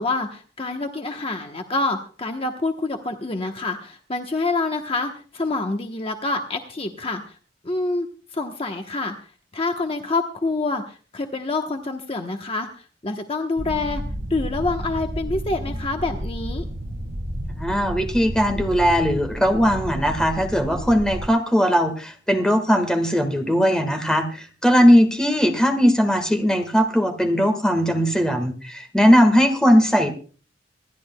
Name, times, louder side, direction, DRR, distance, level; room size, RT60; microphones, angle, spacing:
voice 1, 0.0-7.4 7.6-9.2 9.5-14.0 14.3-16.6, left 3 dB, 30° left, 4 dB, 1.0 m, -27 dB
sound 1, 13.6-21.3, equal, 60° right, 1.3 m, -31 dB
voice 2, 17.6-30.1, equal, 5° left, 5 dB, 1.6 m, -19 dB
26.5 x 11.5 x 2.2 m, 0.38 s
head